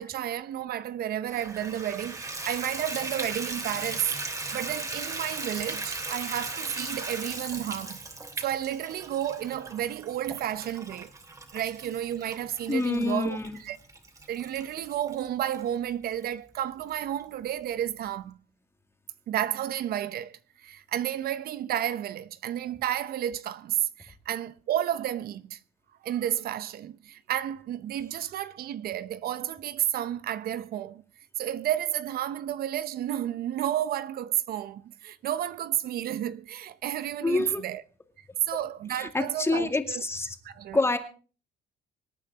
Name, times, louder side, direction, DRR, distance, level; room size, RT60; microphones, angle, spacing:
voice 1, 0.0-4.1 4.5-8.0 8.4-11.1 11.5-13.4 13.6-13.8 14.3-18.4 19.3-25.6 26.0-31.0 31.4-37.8 38.5-40.0 40.4-40.8, right 11 dB, 65° right, 0.9 m, -31 dB
Water tap faucet / Bathtub (filling or washing), 1.3-15.6 16.2-16.3 16.8-16.9 17.2-17.3, right 2 dB, 20° right, 3.0 m, -38 dB
voice 2, 12.7-13.6 37.2-37.6 38.9-40.4 40.7-41.0, left 3 dB, 15° left, 2.3 m, -27 dB
25.0 x 9.6 x 4.1 m
cardioid pair, 110°, 17 cm